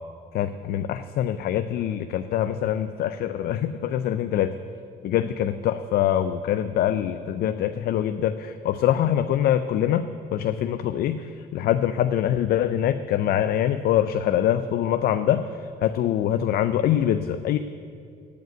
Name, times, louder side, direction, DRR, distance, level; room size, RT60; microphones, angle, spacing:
voice 1, 0.3-4.5 5.0-10.1 10.3-17.6, left 10 dB, 65° left, 10 dB, 0.5 m, -24 dB
15.5 x 5.3 x 9.1 m, 2.4 s
cardioid pair, 100°, 17 cm